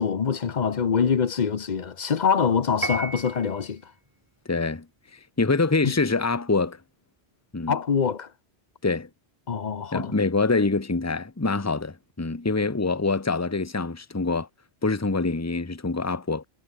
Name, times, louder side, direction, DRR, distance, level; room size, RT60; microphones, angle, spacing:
voice 1, 0.0-3.9 5.8-5.9 7.7-8.3 9.5-10.1, left 6 dB, 45° left, 0.9 m, -24 dB
Piano, 2.8-3.7, right 2 dB, 20° right, 1.3 m, -32 dB
voice 2, 4.5-4.9 5.1-6.8 7.5-7.8 8.8-9.1 9.9-14.5 14.8-16.4, left 3 dB, 15° left, 1.1 m, -25 dB
omnidirectional pair, 1.1 m